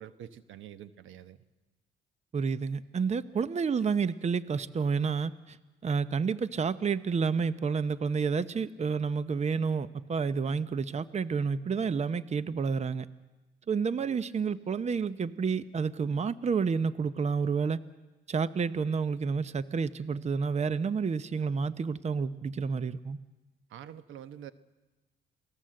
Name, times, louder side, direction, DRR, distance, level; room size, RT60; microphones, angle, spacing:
voice 1, 0.0-1.4 23.7-24.5, right 10 dB, 80° right, 13 dB, 1.1 m, -46 dB
voice 2, 2.3-5.6 5.8-13.1 13.7-17.8 18.3-23.2, right 5 dB, 35° right, 15 dB, 0.8 m, -30 dB
28.0 x 18.5 x 7.7 m, 1.1 s
cardioid pair, 90°, 20 cm